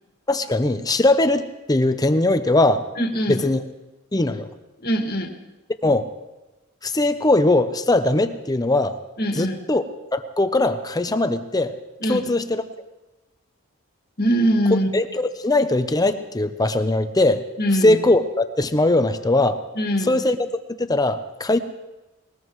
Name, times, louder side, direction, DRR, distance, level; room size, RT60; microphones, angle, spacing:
voice 1, 0.3-2.8 3.3-3.6 4.1-4.5 5.8-6.0 6.8-8.9 9.4-9.8 10.1-11.7 12.1-12.6 14.7-17.4 17.8-19.6 20.0-20.4 20.8-21.6, left 2 dB, 20° left, 9 dB, 0.7 m, -20 dB
voice 2, 3.0-3.4 4.8-5.3 9.2-9.5 12.0-12.2 14.2-14.9 17.6-18.0 19.8-20.2, equal, 50° left, 3 dB, 1.8 m, -22 dB
20.5 x 19.5 x 3.2 m, 1.1 s
head